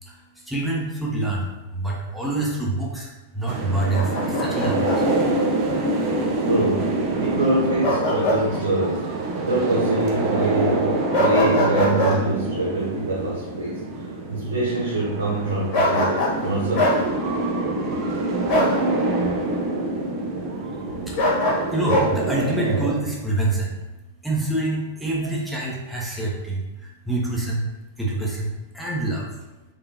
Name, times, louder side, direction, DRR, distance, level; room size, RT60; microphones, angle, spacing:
voice 1, 0.0-5.1 21.1-21.4 21.7-23.8 24.2-27.7 28.0-29.3, right 2 dB, ahead, -5 dB, 0.8 m, -26 dB
sound 1, 3.5-22.9, right 2 dB, 40° right, 0.7 m, -26 dB
Bark, 3.9-5.0 7.8-8.4 8.8-8.9 11.1-12.2 15.7-16.4 16.7-17.0 18.5-18.8 21.2-22.1, left 1 dB, 45° left, 1.2 m, -22 dB
voice 2, 6.4-9.1 9.4-13.8 14.3-17.1, right 2 dB, 80° right, -4 dB, 0.6 m, -25 dB
3.4 x 3.3 x 2.7 m, 1.1 s
figure-of-eight pair, 100°, 0 cm